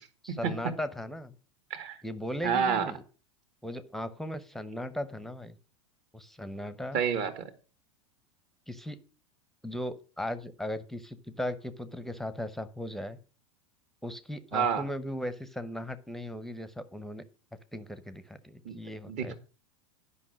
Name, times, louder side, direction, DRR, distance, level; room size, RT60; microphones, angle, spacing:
voice 1, 0.2-1.3 2.0-3.0 3.6-5.6 6.1-7.0 8.7-9.0 9.6-13.2 14.0-17.2 17.7-19.3, left 1 dB, ahead, 13 dB, 0.8 m, -37 dB
voice 2, 2.4-2.9 6.9-7.5 14.5-14.8 18.7-18.8 19.1-19.3, right 7 dB, 45° right, 9 dB, 1.9 m, -29 dB
10.5 x 5.6 x 6.2 m, 0.36 s
hypercardioid pair, 90°, 17 cm